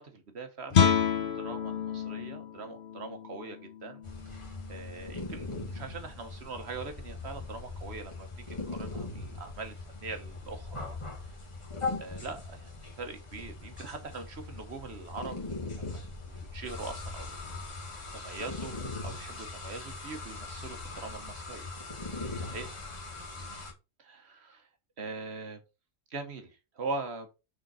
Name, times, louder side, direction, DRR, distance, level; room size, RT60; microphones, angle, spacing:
voice 1, 0.0-4.0 4.7-11.0 11.3-11.4 11.9-17.3 18.1-18.7 19.0-21.7 22.4-22.7 23.4-23.6 24.0-24.7 25.0-25.6 26.1-27.3, right 3 dB, 60° right, 1.4 m, -42 dB
Guitar, 0.7-6.3, left 7 dB, 50° left, 0.7 m, -31 dB
sound 1, 4.0-23.7, left 3 dB, 25° left, 1.6 m, -40 dB
6.4 x 4.5 x 4.1 m
omnidirectional pair, 1.3 m